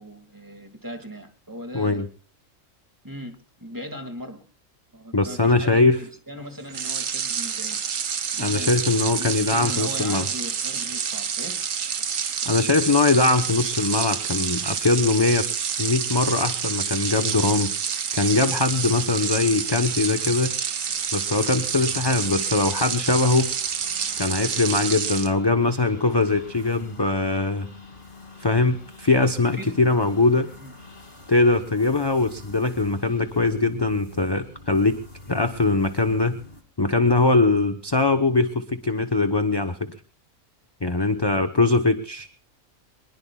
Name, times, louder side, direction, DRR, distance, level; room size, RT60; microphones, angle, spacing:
voice 1, 0.0-2.0 3.0-4.4 4.9-6.0 6.3-7.8 8.3-8.7 9.2-11.6 29.4-29.9 30.6-30.7, equal, 15° right, 5 dB, 2.2 m, -38 dB
voice 2, 1.7-2.1 5.1-6.0 8.4-10.3 12.5-15.5 15.8-17.7 18.1-20.6 21.1-23.5 24.2-27.7 28.4-30.5 31.3-35.0 35.3-36.4 36.8-39.9 40.8-42.3, left 3 dB, 20° left, 7 dB, 0.9 m, -21 dB
sound 1, 6.7-25.3, right 7 dB, 75° right, 1.5 m, -28 dB
sound 2, 17.5-36.6, left 2 dB, 40° left, 2.5 m, -47 dB
24.0 x 21.5 x 2.4 m, 0.43 s
omnidirectional pair, 1.4 m